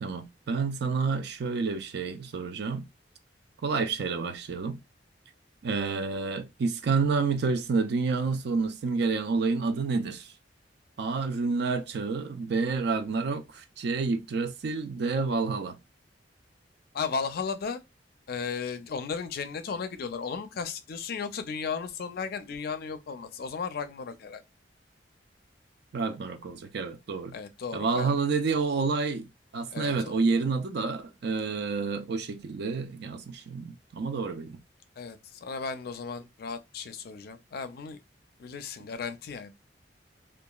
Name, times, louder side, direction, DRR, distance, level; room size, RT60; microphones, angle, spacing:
voice 1, 0.0-2.9 3.6-4.8 5.6-10.3 11.0-15.8 25.9-27.4 27.7-29.3 29.5-34.6, right 4 dB, 65° right, 0.4 m, -29 dB
voice 2, 16.9-17.8 18.3-24.4 27.3-28.2 29.7-30.1 35.0-38.0 38.4-39.5, left 5 dB, 55° left, 0.4 m, -35 dB
2.8 x 2.3 x 2.3 m
head